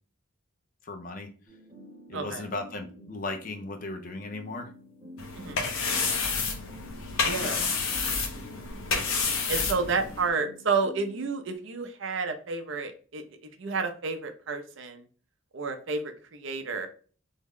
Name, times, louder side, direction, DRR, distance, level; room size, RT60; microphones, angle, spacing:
voice 1, 0.8-1.3 2.1-4.7 7.3-7.7, left 2 dB, 40° left, 5 dB, 0.5 m, -36 dB
sound 1, 1.5-11.5, left 1 dB, 20° right, 0.8 m, -50 dB
voice 2, 2.1-2.5 5.4-5.6 7.2-7.6 9.5-13.2 13.6-15.0 15.5-16.9, right 4 dB, 65° right, 7 dB, 0.5 m, -30 dB
sound 2, 5.2-10.3, left 4 dB, 80° left, 0.7 m, -29 dB
3.5 x 2.1 x 3.5 m, 0.40 s
head